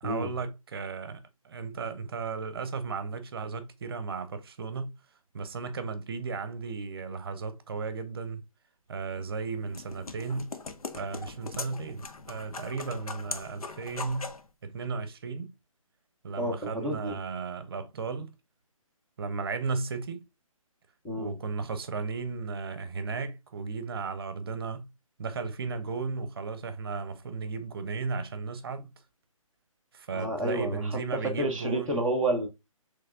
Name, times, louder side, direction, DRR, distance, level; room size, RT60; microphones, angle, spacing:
voice 1, 0.0-4.9 5.3-8.4 8.9-10.5 10.9-14.3 14.6-15.5 16.2-18.3 19.2-20.3 21.2-24.9 25.2-28.9 29.9-32.0, right 4 dB, 45° right, 0.7 m, -35 dB
sound 1, 9.2-14.5, left 4 dB, 85° left, 0.7 m, -41 dB
voice 2, 16.4-17.2 21.0-21.3 30.1-30.8 31.2-32.5, right 1 dB, 5° left, 0.4 m, -29 dB
5.7 x 3.2 x 2.2 m
hypercardioid pair, 155°, 18 cm